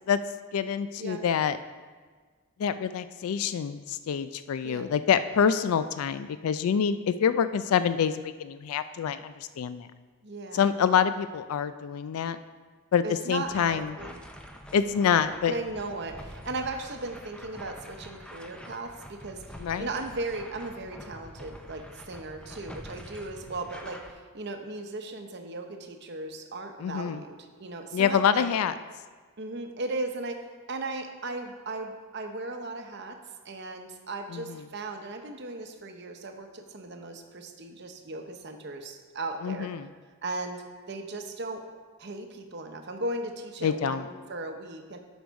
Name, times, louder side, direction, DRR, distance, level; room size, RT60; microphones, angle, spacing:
voice 1, 0.5-1.6 2.6-9.9 10.5-12.4 12.9-13.9 14.7-15.6 19.6-19.9 26.8-27.2 27.9-28.7 34.3-34.4 39.4-39.9 43.6-44.1, left 7 dB, 80° left, 12 dB, 0.3 m, -26 dB
voice 2, 10.2-10.8 13.0-14.2 15.5-28.5 29.4-33.2 33.4-39.7 40.2-41.6 42.0-45.0, right 2 dB, 50° right, 5 dB, 0.8 m, -37 dB
sound 1, 13.5-24.1, equal, 5° left, 0.4 m, -46 dB
8.1 x 6.3 x 5.2 m, 1.5 s
head